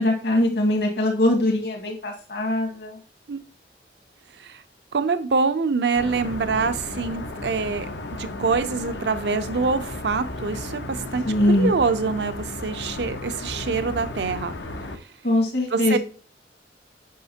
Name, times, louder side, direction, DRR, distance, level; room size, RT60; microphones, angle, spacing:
voice 1, 0.0-3.0 11.3-11.8 15.2-16.0, left 1 dB, 70° left, 0 dB, 2.1 m, -22 dB
voice 2, 4.9-7.9 8.2-11.2 11.6-14.5 15.7-16.0, right 4 dB, 75° right, 10 dB, 0.6 m, -25 dB
sound 1, 5.9-15.0, left 2 dB, 90° left, 0.9 m, -34 dB
8.3 x 6.3 x 2.8 m, 0.37 s
head